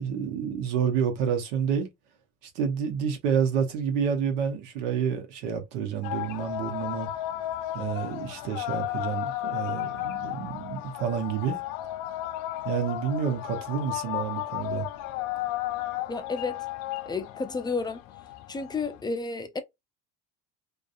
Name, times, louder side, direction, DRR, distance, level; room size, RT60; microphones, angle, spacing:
voice 1, 0.0-1.9 2.5-7.1 7.7-11.6 12.6-14.9, right 7 dB, 90° right, 0.9 m, -29 dB
sound 1, 6.0-19.0, left 14 dB, 65° left, 0.5 m, -34 dB
voice 2, 16.1-16.7 17.1-18.0 18.5-19.6, left 4 dB, 15° left, 0.3 m, -31 dB
2.6 x 2.3 x 2.4 m
supercardioid pair, 100°, 35 cm